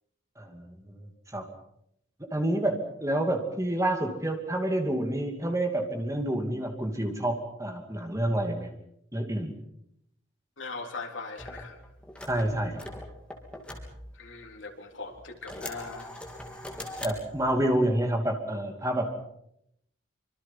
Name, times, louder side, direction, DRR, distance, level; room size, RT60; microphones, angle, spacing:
voice 1, 0.4-0.7 1.3-1.5 2.3-8.7 9.1-9.5 12.3-12.8 17.0-19.1, right 1 dB, 15° right, 4 dB, 2.6 m, -28 dB
voice 2, 10.6-11.8 14.1-16.1, left 4 dB, 70° left, 3 dB, 3.7 m, -40 dB
sound 1, 11.4-14.6 15.1-17.7, left 1 dB, 5° left, 3.7 m, -42 dB
25.5 x 25.0 x 5.8 m, 0.75 s
head